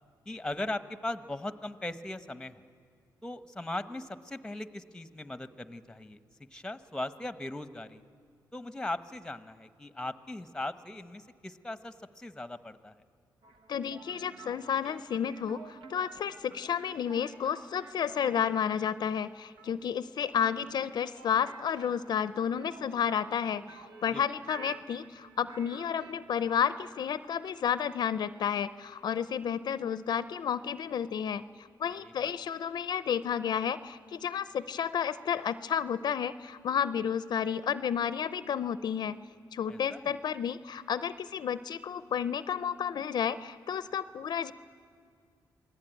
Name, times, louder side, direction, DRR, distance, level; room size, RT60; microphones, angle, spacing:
voice 1, 0.3-2.6 3.2-6.2 6.5-8.0 8.5-13.0 24.1-24.2 32.0-32.3 39.7-40.1, left 2 dB, 10° left, 12 dB, 0.9 m, -39 dB
sound 1, 13.4-26.9, right 5 dB, 80° right, 1.4 m, -52 dB
voice 2, 13.7-39.2 39.5-44.5, left 8 dB, 60° left, 15 dB, 0.5 m, -31 dB
27.0 x 20.0 x 9.1 m, 2.2 s
cardioid pair, 110°, 8 cm